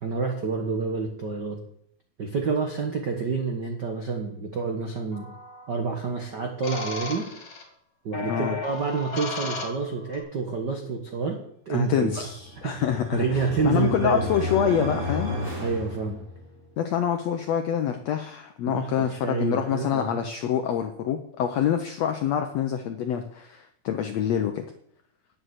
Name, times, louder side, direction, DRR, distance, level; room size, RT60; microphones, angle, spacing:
voice 1, 0.0-1.6 2.2-5.3 5.7-7.3 8.0-12.1 12.6-12.8 13.1-14.3 15.6-16.2 18.7-20.2, right 4 dB, 90° right, 3 dB, 0.9 m, -28 dB
sound 1, 5.1-5.6 6.6-7.6 8.1-10.2, left 3 dB, 45° left, 3.0 m, -35 dB
voice 2, 8.2-8.5 11.7-13.2 13.6-15.4 16.8-24.6, left 9 dB, 80° left, 6 dB, 1.5 m, -26 dB
sound 2, 12.3-16.6, left 1 dB, 20° right, 3.1 m, -33 dB
10.0 x 7.8 x 8.0 m, 0.69 s
omnidirectional pair, 4.0 m